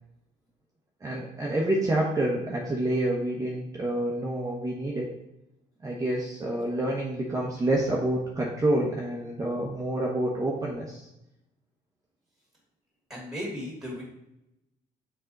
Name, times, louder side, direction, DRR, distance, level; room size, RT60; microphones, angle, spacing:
voice 1, 1.0-5.1 5.8-11.1, right 1 dB, 20° right, -3 dB, 1.1 m, -28 dB
voice 2, 13.1-14.0, left 1 dB, 5° right, -2 dB, 2.3 m, -35 dB
6.8 x 4.5 x 3.9 m, 0.86 s
cardioid pair, 110°, 17 cm